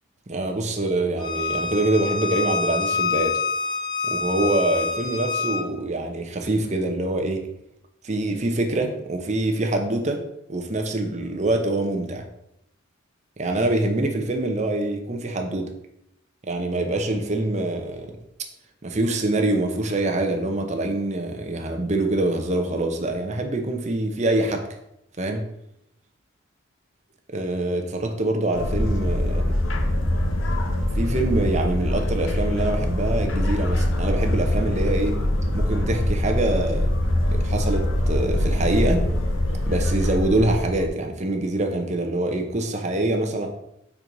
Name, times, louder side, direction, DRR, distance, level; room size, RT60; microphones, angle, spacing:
voice 1, 0.3-3.4 4.1-7.4 8.0-10.2 10.5-12.2 13.4-15.7 16.4-18.1 18.8-24.6 25.2-25.4 27.3-29.4 31.0-35.2 35.5-36.9 37.3-39.0 39.7-43.5, right 2 dB, 35° right, 3 dB, 0.8 m, -25 dB
Bowed string instrument, 1.2-5.6, left 4 dB, 25° left, 0.8 m, -26 dB
sound 1, 28.5-40.9, left 1 dB, 75° left, 0.9 m, -23 dB
4.7 x 4.3 x 5.2 m, 0.81 s
head